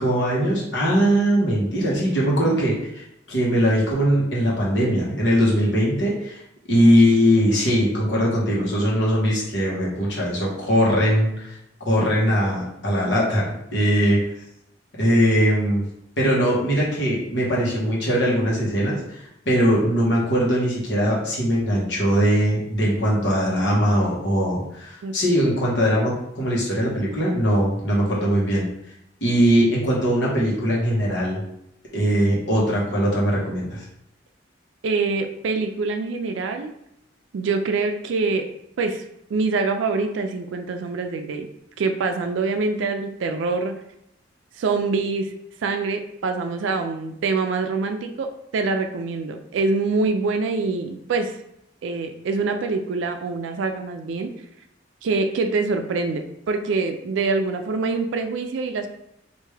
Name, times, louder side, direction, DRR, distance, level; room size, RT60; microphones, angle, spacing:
voice 1, 0.0-6.4 6.7-11.6 11.9-14.2 15.0-15.8 16.2-19.2 19.4-28.7 29.2-31.4 31.9-33.8, equal, 70° left, -4 dB, 1.2 m, -21 dB
voice 2, 34.8-36.7 37.3-38.4 38.8-39.0 39.3-41.5 41.8-43.8 44.6-45.3 45.6-51.4 51.8-54.3 55.0-58.9, right 4 dB, 80° right, 6 dB, 0.3 m, -25 dB
3.4 x 2.6 x 3.2 m, 0.80 s
head